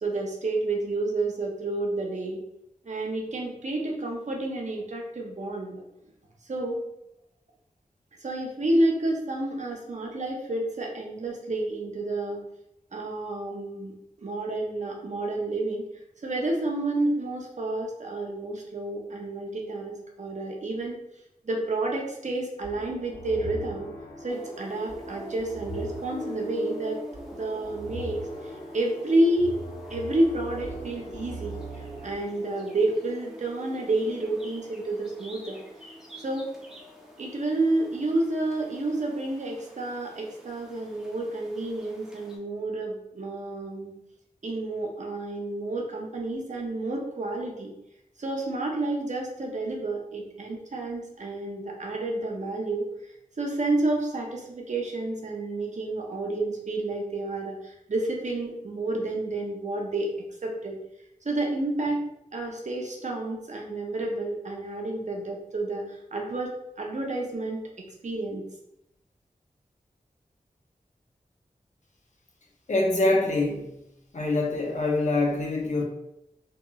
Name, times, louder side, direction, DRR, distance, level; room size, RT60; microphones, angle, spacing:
voice 1, 0.0-2.4 2.8-5.8 6.5-6.8 8.2-12.4 12.9-15.9 16.2-21.0 21.4-23.9 24.2-27.0 27.3-28.2 28.4-29.6 29.9-35.6 36.2-36.5 37.2-43.9 44.4-47.7 48.2-52.8 53.4-60.1 60.4-60.8 61.2-62.0 62.3-68.4, right 2 dB, 55° right, 0 dB, 0.6 m, -30 dB
sound 1, 22.6-32.1, right 1 dB, 90° left, 1.0 m, -41 dB
sound 2, 24.3-42.4, equal, 5° right, 0.6 m, -44 dB
voice 2, 72.7-73.7 74.1-75.8, left 2 dB, 55° left, -1 dB, 0.6 m, -24 dB
2.9 x 2.8 x 2.3 m, 0.82 s
wide cardioid pair, 80°, 14 cm